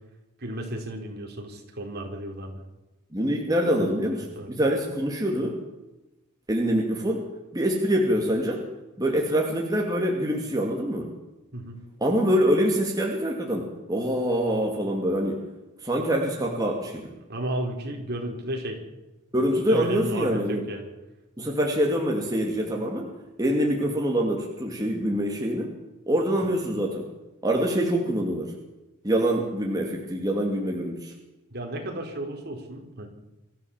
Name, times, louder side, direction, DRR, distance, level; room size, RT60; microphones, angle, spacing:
voice 1, 0.4-2.6 3.8-4.5 11.5-11.8 17.3-18.8 19.7-20.9 31.5-33.1, right 1 dB, 50° right, 2 dB, 4.4 m, -33 dB
voice 2, 3.1-5.6 6.5-8.6 9.0-11.1 12.0-15.5 15.8-17.1 19.3-20.6 21.4-23.1 23.4-25.7 26.1-27.0 27.4-28.5 29.0-31.1, equal, 15° right, -1 dB, 2.7 m, -25 dB
25.0 x 14.5 x 7.4 m, 1.0 s
head